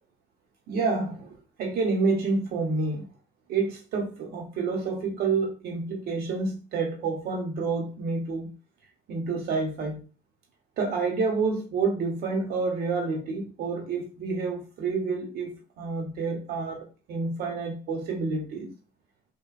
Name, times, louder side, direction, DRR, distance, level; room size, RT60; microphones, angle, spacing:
voice 1, 0.7-3.1 3.5-8.5 9.1-10.0 10.8-18.7, right 4 dB, 65° right, 0.9 m, -29 dB
2.9 x 2.2 x 2.3 m
cardioid pair, 110°, 17 cm